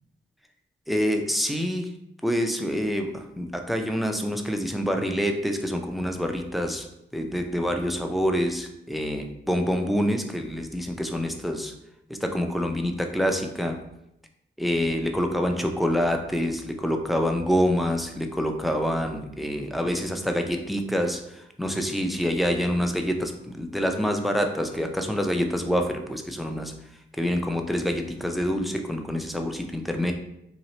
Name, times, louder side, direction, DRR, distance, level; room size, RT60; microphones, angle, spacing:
voice 1, 0.9-1.9 2.2-6.9 7.1-11.7 12.2-13.8 14.6-26.7 27.2-30.1, equal, ahead, 4 dB, 0.4 m, -26 dB
3.0 x 2.8 x 4.1 m, 0.81 s
wide cardioid pair, 110°, 20 cm